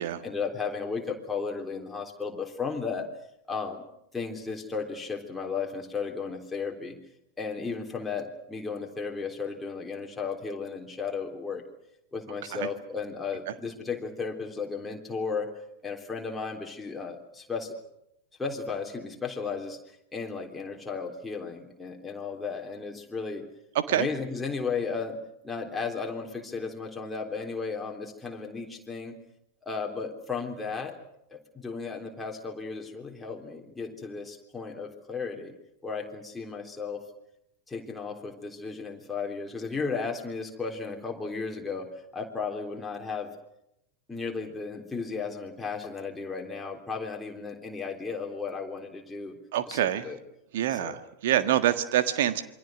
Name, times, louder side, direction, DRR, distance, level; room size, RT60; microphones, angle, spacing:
voice 1, 0.2-3.1 3.5-3.8 4.1-7.0 7.4-11.6 12.1-15.5 15.8-17.8 18.4-19.8 20.1-23.5 23.9-25.2 25.4-29.2 29.7-31.0 31.3-35.5 35.8-37.0 37.7-43.3 44.1-49.4 49.7-50.2 50.7-51.0 51.3-51.5, left 5 dB, 10° left, 1 dB, 3.6 m, -34 dB
voice 2, 49.5-50.0 50.5-52.4, right 12 dB, 55° right, 10 dB, 1.6 m, -26 dB
27.5 x 23.5 x 6.3 m, 0.82 s
figure-of-eight pair, 90°, 0 cm